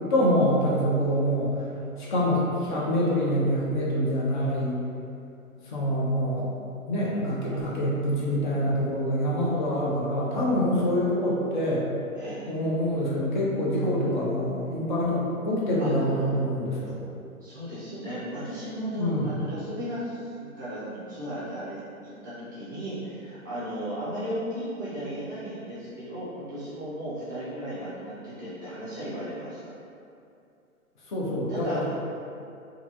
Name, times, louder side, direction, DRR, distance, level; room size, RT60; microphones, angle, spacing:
voice 1, 0.0-1.6 2.0-4.8 5.7-6.5 6.9-11.9 12.5-17.0 19.0-19.3 31.1-31.9, equal, 35° left, -5 dB, 0.6 m, -25 dB
voice 2, 7.5-9.2 12.1-12.5 15.8-16.3 17.4-21.8 22.2-29.6 31.5-32.0, equal, 15° right, -13 dB, 0.4 m, -36 dB
2.9 x 2.4 x 2.5 m, 2.6 s
figure-of-eight pair, 135°, 43 cm